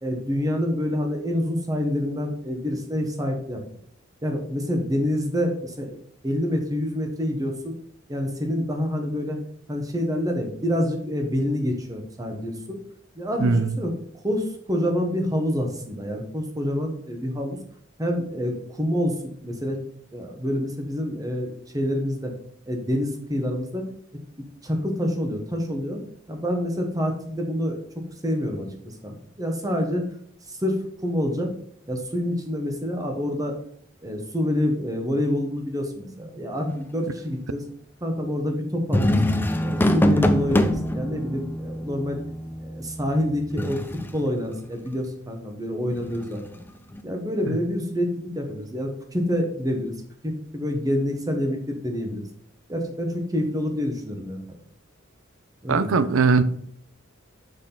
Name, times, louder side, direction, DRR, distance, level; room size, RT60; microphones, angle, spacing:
voice 1, 0.0-3.6 4.2-6.0 6.2-7.8 8.1-9.4 9.7-12.8 13.1-13.9 14.2-17.6 18.0-19.8 20.1-22.3 22.7-23.8 24.6-26.0 26.3-27.8 28.2-30.0 30.5-31.5 31.9-33.6 34.0-37.6 38.0-39.2 39.6-42.2 42.6-43.8 44.1-46.4 47.0-49.9 50.2-52.3 52.7-54.4 55.6-55.9, left 1 dB, 20° right, 3 dB, 1.2 m, -27 dB
voice 2, 13.4-13.7 47.5-47.6 55.7-56.4, right 4 dB, 90° right, 14 dB, 0.5 m, -20 dB
sound 1, 38.9-44.2 45.9-47.0, left 1 dB, 10° left, 0.5 m, -24 dB
6.4 x 6.2 x 3.9 m, 0.62 s
head